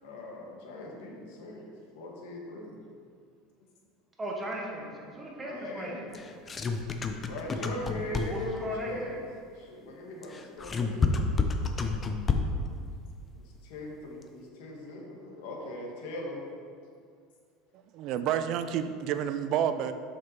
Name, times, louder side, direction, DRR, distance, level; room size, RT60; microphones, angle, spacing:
voice 1, 0.0-2.8 5.4-6.5 7.1-9.3 9.5-11.1 13.3-16.4, left 1 dB, 75° left, -1 dB, 1.6 m, -40 dB
voice 2, 4.2-6.0 8.3-9.2, right 1 dB, 20° right, -1 dB, 1.4 m, -37 dB
sound 1, 6.1-8.6 10.2-12.7, left 4 dB, 25° left, 0.6 m, -29 dB
voice 3, 17.9-19.9, right 9 dB, 55° right, 10 dB, 0.4 m, -29 dB
6.3 x 5.3 x 4.4 m, 2.2 s
supercardioid pair, 115°, 0 cm